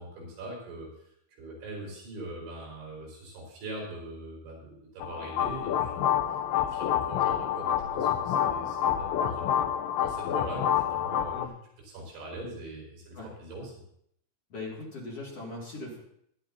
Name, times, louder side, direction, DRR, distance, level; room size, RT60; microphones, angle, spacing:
voice 1, 0.0-11.4 11.8-13.8, right 1 dB, 65° right, -3 dB, 6.6 m, -42 dB
sound 1, 5.0-11.5, left 10 dB, 80° left, 2.5 m, -28 dB
voice 2, 14.5-16.0, left 2 dB, 40° left, -3 dB, 2.3 m, -39 dB
19.5 x 11.5 x 2.8 m, 0.71 s
omnidirectional pair, 5.9 m